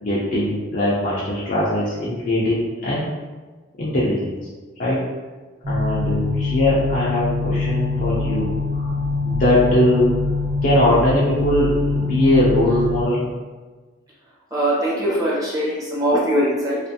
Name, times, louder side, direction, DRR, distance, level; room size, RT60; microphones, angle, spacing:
voice 1, 0.0-3.1 3.8-4.4 4.8-5.0 5.7-8.8 9.3-10.1 10.6-13.3, left 1 dB, 40° left, -8 dB, 0.4 m, -20 dB
sound 1, 5.6-13.0, left 3 dB, 65° right, 0.7 m, -24 dB
voice 2, 14.5-16.8, equal, 20° right, -8 dB, 0.7 m, -21 dB
2.5 x 2.4 x 2.6 m, 1.3 s
head